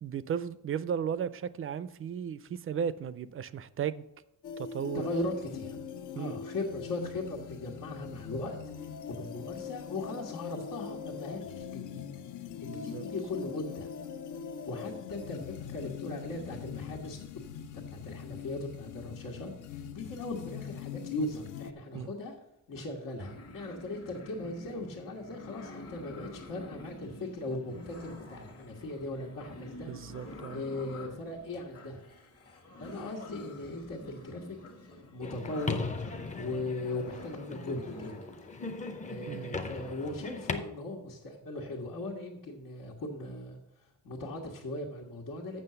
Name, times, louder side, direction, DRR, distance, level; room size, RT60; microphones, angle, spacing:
voice 1, 0.0-4.0 4.6-5.1 6.2-6.4 12.7-13.1 21.9-22.1 29.9-30.6 39.3-39.6, right 8 dB, 45° right, 0.4 m, -35 dB
sound 1, 4.4-21.7, left 7 dB, 70° left, 0.6 m, -42 dB
voice 2, 4.9-5.8 6.2-8.6 9.1-12.0 12.6-13.9 14.7-17.2 17.9-22.3 22.7-29.9 30.2-32.0 32.8-34.6 35.1-35.9 36.3-38.5 39.0-43.6 44.0-45.6, left 2 dB, 85° left, 1.6 m, -38 dB
sound 2, 23.2-38.5, left 1 dB, 45° left, 1.4 m, -48 dB
sound 3, 35.2-40.5, left 4 dB, 20° left, 0.6 m, -38 dB
7.7 x 6.2 x 6.8 m
wide cardioid pair, 180°, 32 cm